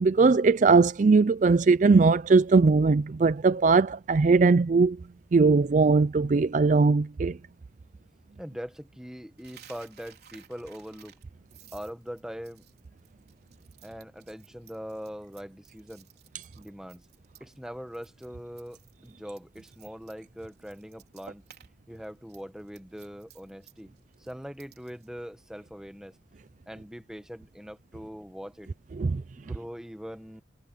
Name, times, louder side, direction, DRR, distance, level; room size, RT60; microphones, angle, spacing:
voice 1, 0.0-5.0 5.3-7.4 29.0-29.2, right 4 dB, 40° right, 0.4 m, -20 dB
voice 2, 8.4-11.2 11.7-12.6 13.8-16.1 16.6-17.1 17.4-21.4 21.9-23.9 24.2-26.2 26.7-28.7 29.3-30.4, equal, 5° right, 1.4 m, -42 dB
Coin (dropping), 9.4-17.7 17.9-18.3 18.6-21.7 21.9-25.1, right 10 dB, 55° right, 4.7 m, -56 dB
head